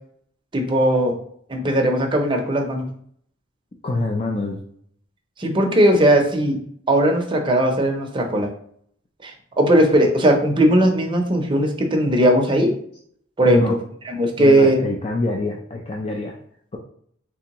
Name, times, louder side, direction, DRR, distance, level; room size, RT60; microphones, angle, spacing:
voice 1, 0.5-1.1 1.5-2.9 5.4-6.6 6.9-8.5 9.2-12.7 13.4-13.8 14.1-14.8, right 1 dB, 25° right, 2 dB, 0.6 m, -18 dB
voice 2, 3.8-4.6 13.4-13.7 14.4-16.3, left 2 dB, 30° left, -1 dB, 0.4 m, -25 dB
3.5 x 3.3 x 2.9 m, 0.63 s
head